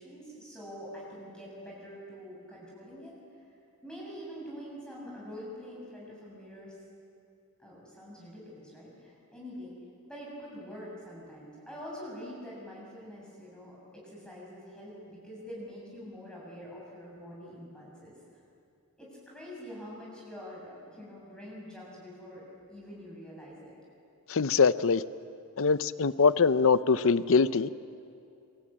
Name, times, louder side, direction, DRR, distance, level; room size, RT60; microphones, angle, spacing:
voice 1, 0.0-3.2 3.8-6.8 7.6-9.7 10.0-18.2 19.0-22.4 22.7-23.7, equal, 5° left, -5 dB, 6.7 m, -45 dB
voice 2, 24.3-25.0 25.6-27.7, left 5 dB, 60° left, 15 dB, 0.6 m, -23 dB
27.0 x 23.0 x 8.6 m, 2.6 s
head